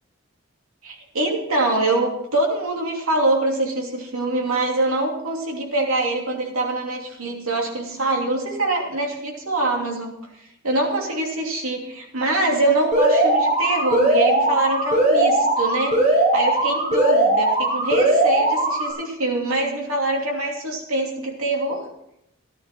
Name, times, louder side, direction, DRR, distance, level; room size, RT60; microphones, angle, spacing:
voice 1, 0.8-10.1 10.6-21.8, right 2 dB, 85° right, 0 dB, 2.9 m, -24 dB
Alarm, 12.9-18.9, right 2 dB, 35° right, 5.5 m, -19 dB
14.5 x 11.5 x 4.5 m, 0.81 s
head